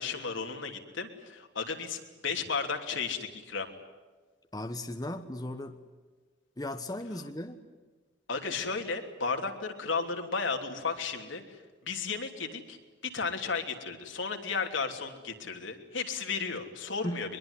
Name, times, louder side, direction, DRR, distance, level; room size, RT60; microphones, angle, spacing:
voice 1, 0.0-3.7 8.3-11.6 11.8-12.8 13.0-17.4, left 5 dB, 75° left, 4 dB, 3.1 m, -34 dB
voice 2, 4.5-5.8 6.6-7.6 17.0-17.2, left 1 dB, 20° left, 6 dB, 1.2 m, -36 dB
23.0 x 22.0 x 9.8 m, 1.3 s
head